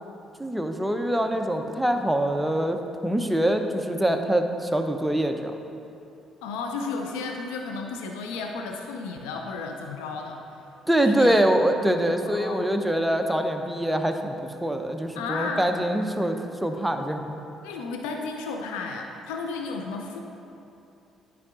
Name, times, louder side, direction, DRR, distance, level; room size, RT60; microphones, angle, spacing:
voice 1, 0.4-2.8 3.0-5.6 10.9-17.4, right 1 dB, 5° right, 5 dB, 0.7 m, -24 dB
voice 2, 6.4-10.4 11.0-11.4 12.3-12.7 15.1-15.7 17.6-20.2, left 4 dB, 85° left, 2 dB, 0.5 m, -33 dB
9.9 x 4.7 x 3.7 m, 2.7 s
hypercardioid pair, 55°, 0 cm